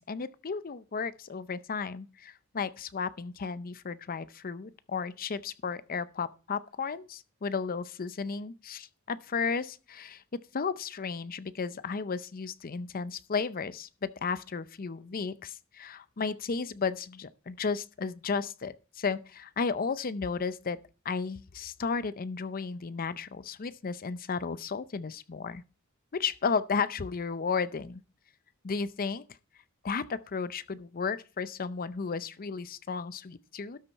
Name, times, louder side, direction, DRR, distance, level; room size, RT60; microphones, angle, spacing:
voice 1, 0.1-10.2 10.5-20.8 21.0-25.6 26.1-28.0 28.6-29.2 29.8-33.8, left 5 dB, 45° left, 0.6 m, -34 dB
12.5 x 7.0 x 4.5 m
head